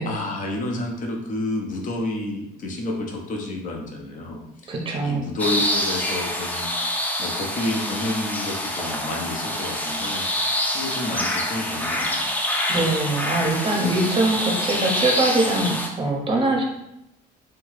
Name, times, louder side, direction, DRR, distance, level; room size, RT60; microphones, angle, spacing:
voice 1, 0.1-4.7 5.0-6.7 7.2-10.5 10.7-12.3, left 2 dB, 50° left, 1 dB, 0.7 m, -30 dB
voice 2, 4.7-5.3 12.7-16.6, right 2 dB, 30° right, 1 dB, 0.6 m, -23 dB
sound 1, 5.4-15.9, left 1 dB, 10° left, 0.4 m, -26 dB
2.8 x 2.2 x 3.1 m, 0.83 s
cardioid pair, 110°, 17 cm